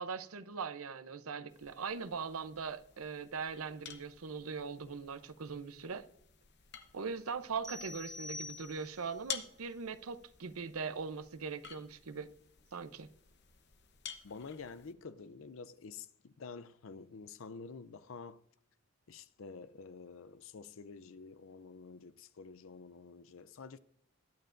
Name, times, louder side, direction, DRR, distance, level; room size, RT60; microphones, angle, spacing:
voice 1, 0.0-6.0 6.9-12.3 12.7-13.1, right 5 dB, 85° right, 0.7 m, -41 dB
sound 1, 1.5-14.9, left 8 dB, 50° left, 0.9 m, -51 dB
sound 2, 7.6-9.2, left 2 dB, 5° left, 1.0 m, -46 dB
voice 2, 14.2-18.4 19.1-23.8, left 4 dB, 70° left, 0.5 m, -49 dB
21.5 x 9.2 x 2.6 m
head